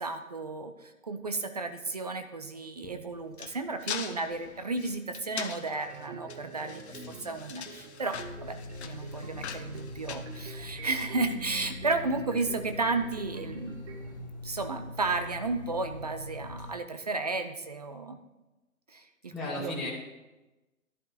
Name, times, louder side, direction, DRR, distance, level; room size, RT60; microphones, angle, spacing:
voice 1, 0.0-8.6 8.8-13.8 14.4-18.2 18.9-19.7, right 3 dB, 30° right, 8 dB, 0.4 m, -33 dB
sound 1, 2.8-11.0, left 7 dB, 50° left, 0.9 m, -42 dB
sound 2, 5.9-14.2, right 4 dB, 50° right, 2.1 m, -47 dB
sound 3, 8.1-16.7, left 2 dB, 30° left, 0.5 m, -43 dB
voice 2, 19.3-19.9, left 2 dB, ahead, -7 dB, 0.9 m, -35 dB
11.5 x 11.0 x 2.7 m, 1.1 s
figure-of-eight pair, 130°, 43 cm